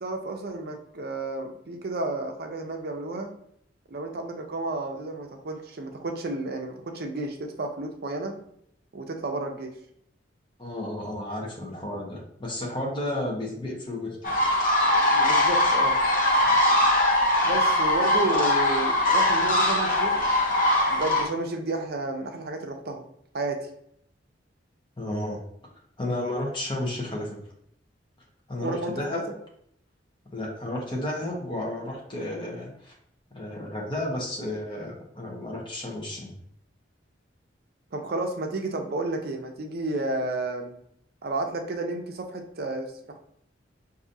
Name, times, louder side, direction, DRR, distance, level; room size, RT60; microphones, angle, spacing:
voice 1, 0.0-3.3 3.9-8.3 8.9-9.8 15.1-16.0 17.4-20.2 20.9-23.0 23.3-23.7 28.6-29.2 37.9-40.7 41.2-43.2, right 2 dB, 55° right, 4 dB, 0.6 m, -31 dB
voice 2, 10.6-14.4 16.3-16.4 25.0-25.4 26.0-27.4 28.5-29.3 30.3-32.9 33.3-36.3, left 1 dB, 25° left, -3 dB, 1.0 m, -32 dB
sound 1, 14.2-21.2, left 1 dB, 50° left, 0.7 m, -21 dB
4.9 x 2.7 x 2.6 m, 0.70 s
head